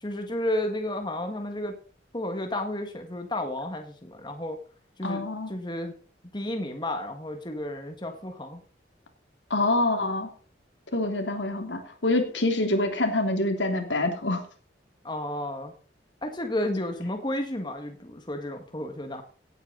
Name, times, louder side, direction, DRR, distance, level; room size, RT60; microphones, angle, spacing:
voice 1, 0.0-1.7 2.1-4.6 5.0-5.9 6.3-8.6 15.0-15.7 16.2-19.2, left 1 dB, 25° left, 5 dB, 1.8 m, -32 dB
voice 2, 5.0-5.5 9.5-10.3 10.9-14.4, left 2 dB, 90° left, 4 dB, 3.1 m, -26 dB
17.0 x 9.1 x 4.0 m, 0.40 s
head